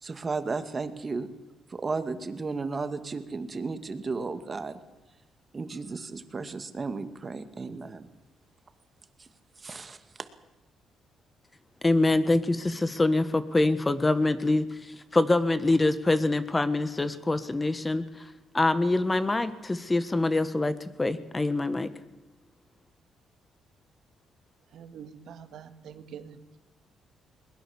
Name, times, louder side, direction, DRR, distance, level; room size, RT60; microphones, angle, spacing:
voice 1, 0.0-1.3 1.7-4.8 5.5-8.1 9.6-10.0, right 4 dB, 30° right, 9 dB, 2.2 m, -34 dB
voice 2, 11.8-14.6 15.1-18.0 18.5-21.9, left 2 dB, 20° left, 12 dB, 1.5 m, -25 dB
voice 3, 24.7-26.6, right 7 dB, 70° right, 9 dB, 2.1 m, -45 dB
21.5 x 20.5 x 7.4 m, 1.1 s
cardioid pair, 90°, 0 cm